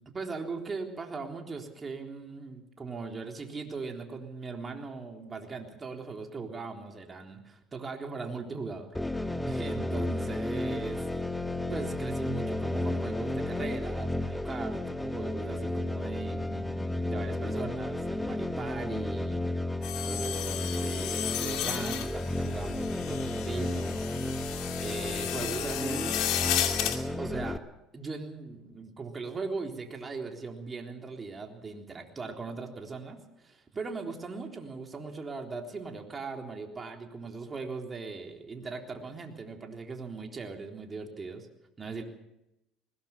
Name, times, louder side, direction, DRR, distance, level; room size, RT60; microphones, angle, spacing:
voice 1, 0.1-8.9 9.5-11.1 11.7-19.5 20.0-24.5 24.8-26.3 27.2-27.6 27.9-41.5 41.8-42.0, right 4 dB, 30° right, 3 dB, 3.7 m, -39 dB
sound 1, 8.9-27.6, left 1 dB, 10° left, 1.3 m, -33 dB
sound 2, 19.8-27.0, left 11 dB, 65° left, 2.5 m, -33 dB
20.5 x 18.0 x 7.3 m, 0.88 s
hypercardioid pair, 70°, 0 cm